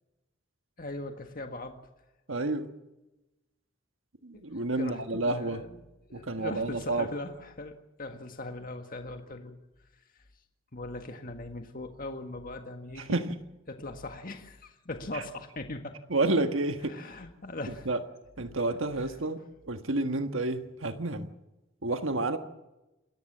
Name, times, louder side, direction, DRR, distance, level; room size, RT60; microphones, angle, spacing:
voice 1, 0.8-1.8 4.3-5.8 6.1-7.7 8.0-9.6 9.9-10.0 10.7-13.2 13.7-16.0 16.9-17.9 18.7-19.2, left 2 dB, 45° left, 5 dB, 1.7 m, -40 dB
voice 2, 2.3-2.7 4.2-5.6 6.1-7.1 13.1-13.3 15.1-15.2 16.1-17.0 17.9-18.0 18.4-21.3 21.8-22.4, right 2 dB, 70° right, 7 dB, 1.5 m, -30 dB
28.0 x 14.5 x 7.4 m, 1.0 s
head